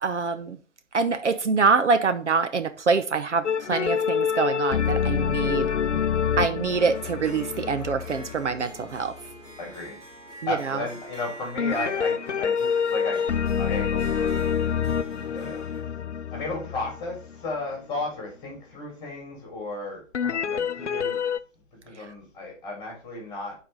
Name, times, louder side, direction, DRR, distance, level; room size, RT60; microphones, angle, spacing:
voice 1, 0.0-0.6 0.9-5.7 6.4-9.1 10.4-10.8, right 4 dB, 65° right, 0.9 m, -25 dB
sound 1, 3.4-9.1 11.6-17.5 20.1-21.4, left 7 dB, 65° left, 0.6 m, -27 dB
voice 2, 5.7-6.1 9.6-10.0 10.5-13.2 13.6-14.3 15.3-15.6 16.3-21.2 21.8-23.6, left 2 dB, 10° left, 3.9 m, -34 dB
Harp, 6.7-15.8, right 1 dB, 15° right, 2.0 m, -45 dB
8.5 x 4.7 x 5.2 m
figure-of-eight pair, 140°, 39 cm